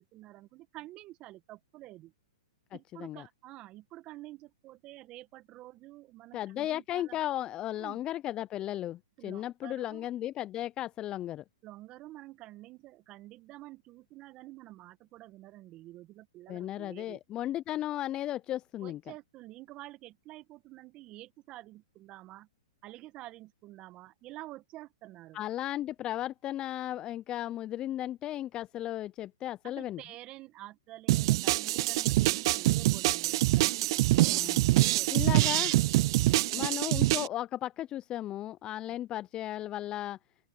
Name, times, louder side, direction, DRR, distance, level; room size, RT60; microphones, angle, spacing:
voice 1, 0.0-2.1 2.7-7.2 7.8-8.0 9.2-10.1 11.6-17.2 18.8-22.5 22.8-25.4 29.8-35.5 36.5-36.6, right 16 dB, 35° right, 1.7 m, -49 dB
voice 2, 2.7-3.3 6.3-11.4 16.5-19.0 25.3-30.0 34.3-34.7 35.1-35.7 36.5-40.2, left 13 dB, 25° left, 0.6 m, -35 dB
sound 1, 31.1-37.3, right 18 dB, 50° right, 0.3 m, -25 dB
open air
hypercardioid pair, 120°, 3 cm